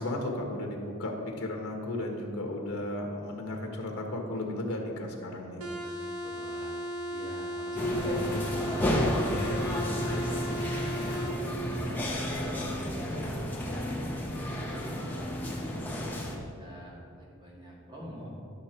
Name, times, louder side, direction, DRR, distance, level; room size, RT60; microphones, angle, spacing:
voice 1, 0.0-5.7 13.1-13.4, left 1 dB, 90° left, 1 dB, 1.3 m, -34 dB
sound 1, 5.6-11.4, equal, 85° right, 1.0 m, -36 dB
voice 2, 5.8-6.7 7.1-8.4 8.7-10.8 11.1-12.8 13.5-14.0 14.3-16.2 16.6-18.3, equal, 20° right, -4 dB, 1.7 m, -44 dB
sound 2, 7.8-16.4, left 1 dB, 10° left, 0.8 m, -31 dB
11.0 x 5.9 x 4.4 m, 2.4 s
head